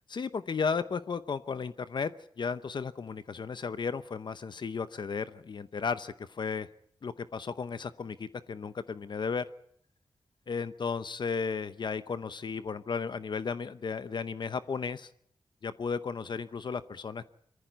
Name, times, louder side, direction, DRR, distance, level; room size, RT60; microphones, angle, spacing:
voice 1, 0.1-2.1 2.4-6.7 7.0-9.5 10.5-15.1 15.6-17.3, left 5 dB, 55° left, 13 dB, 0.8 m, -34 dB
22.5 x 14.5 x 9.2 m, 0.69 s
wide cardioid pair, 90°, 9 cm